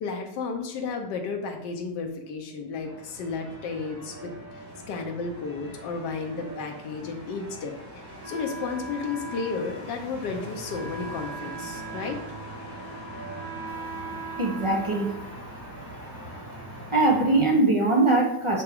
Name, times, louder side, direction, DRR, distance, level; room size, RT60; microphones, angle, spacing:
voice 1, 0.0-12.2, left 4 dB, 90° left, 3 dB, 1.4 m, -33 dB
sound 1, 2.8-17.4, right 1 dB, 85° right, 3.3 m, -42 dB
Wind instrument woodwind instrument, 8.2-15.9, right 3 dB, 65° right, 1.8 m, -41 dB
voice 2, 14.4-15.2 16.9-18.6, right 2 dB, 45° right, -1 dB, 0.4 m, -21 dB
7.8 x 3.4 x 3.5 m, 0.79 s
omnidirectional pair, 1.8 m